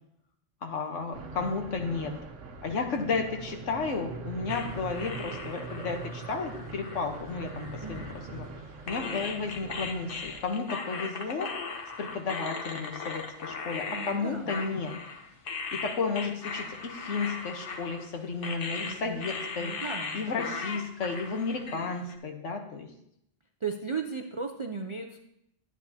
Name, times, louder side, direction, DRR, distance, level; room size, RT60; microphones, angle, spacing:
voice 1, 0.6-2.1 2.6-8.0 8.3-8.5 8.9-11.5 12.0-14.9 15.8-19.7 20.1-22.9, left 4 dB, 75° left, 4 dB, 1.5 m, -33 dB
sound 1, 1.1-10.4, right 4 dB, 80° right, 1.2 m, -42 dB
sound 2, 4.5-8.5 8.9-22.2, left 4 dB, 50° left, 1.1 m, -38 dB
voice 2, 7.8-8.2 13.9-14.6 18.8-19.3 19.6-20.6 23.6-25.2, right 5 dB, 50° right, 4 dB, 0.3 m, -37 dB
12.0 x 9.1 x 2.8 m, 0.77 s
omnidirectional pair, 1.3 m